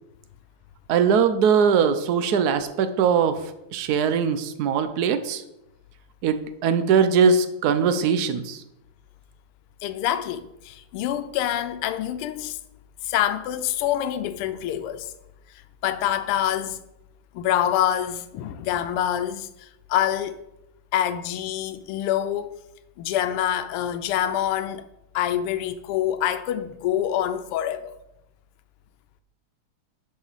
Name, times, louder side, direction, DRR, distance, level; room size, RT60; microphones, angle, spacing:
voice 1, 0.9-3.4 3.7-5.4 6.2-8.6, right 6 dB, 65° right, 1.0 m, -21 dB
voice 2, 9.8-12.6 13.0-15.1 15.8-16.8 17.3-20.4 20.9-22.6 23.0-24.9 25.1-28.0, left 11 dB, 85° left, 1.6 m, -26 dB
10.5 x 7.0 x 4.1 m
omnidirectional pair, 2.4 m